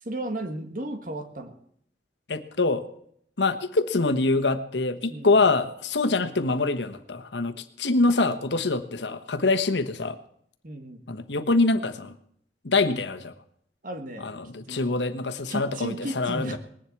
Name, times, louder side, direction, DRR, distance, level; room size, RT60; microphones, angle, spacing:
voice 1, 0.0-1.6 5.1-5.4 10.6-11.0 13.8-14.3 14.7-15.0 15.5-16.6, right 1 dB, 50° right, 7 dB, 1.7 m, -34 dB
voice 2, 2.3-2.8 3.4-10.2 11.1-12.1 12.6-13.3 14.2-16.6, left 3 dB, 85° left, 9 dB, 1.2 m, -25 dB
19.5 x 7.6 x 8.4 m, 0.67 s
head